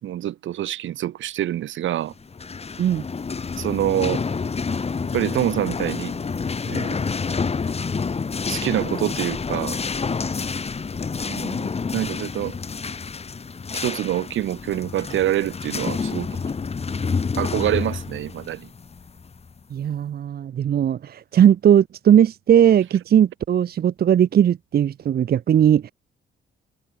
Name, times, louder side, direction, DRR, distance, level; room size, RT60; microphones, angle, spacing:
voice 1, 0.0-2.1 3.5-4.2 5.1-6.2 6.7-7.0 8.5-9.8 11.3-12.6 13.7-16.4 17.4-18.7, right 12 dB, 75° right, 2.6 m, -26 dB
sound 1, 2.2-19.6, left 5 dB, 30° left, 1.9 m, -28 dB
voice 2, 19.7-25.9, right 9 dB, 50° right, 0.8 m, -18 dB
cardioid pair, 90°, 20 cm